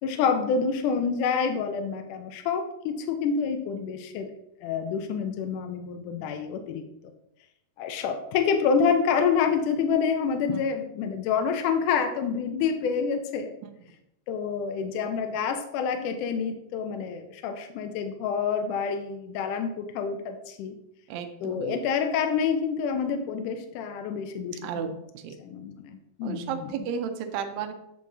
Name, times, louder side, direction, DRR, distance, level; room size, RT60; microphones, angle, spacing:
voice 1, 0.0-4.3 4.6-6.8 7.8-13.5 14.3-20.8 21.4-24.9 25.4-26.7, left 6 dB, 80° left, 6 dB, 2.1 m, -27 dB
voice 2, 21.1-21.8 24.6-25.3 26.2-27.7, right 7 dB, 80° right, 6 dB, 1.7 m, -33 dB
8.5 x 6.7 x 2.6 m, 0.81 s
omnidirectional pair, 3.8 m